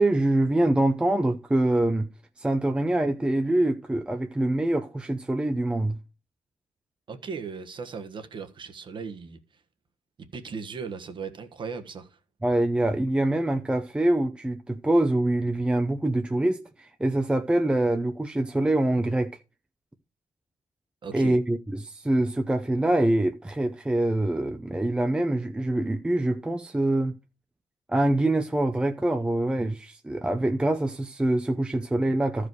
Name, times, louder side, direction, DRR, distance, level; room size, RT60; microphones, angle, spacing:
voice 1, 0.0-2.1 2.4-6.0 12.4-19.3 21.1-27.1 27.9-32.5, right 1 dB, 10° right, 0.6 m, -25 dB
voice 2, 7.1-9.6 10.3-12.2 21.0-21.4, right 5 dB, 40° right, 1.4 m, -37 dB
13.5 x 5.0 x 4.7 m
cardioid pair, 145°, 13 cm